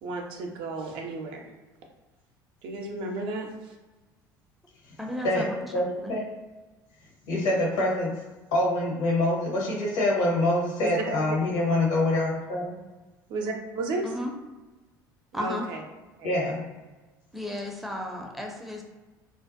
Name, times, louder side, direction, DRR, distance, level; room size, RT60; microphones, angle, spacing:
voice 1, 0.0-1.5 2.6-3.7 10.8-11.2 13.3-14.1 15.3-15.8 16.2-16.3, right 3 dB, 55° right, 2 dB, 0.5 m, -33 dB
voice 2, 5.0-6.2 14.0-14.3 15.3-15.7 17.3-18.8, left 1 dB, ahead, 0 dB, 0.5 m, -34 dB
voice 3, 5.7-6.2 7.3-8.1 8.5-12.8 16.2-16.6, left 1 dB, 70° left, -4 dB, 0.9 m, -25 dB
2.5 x 2.2 x 2.5 m, 1.2 s
hypercardioid pair, 65°, 10 cm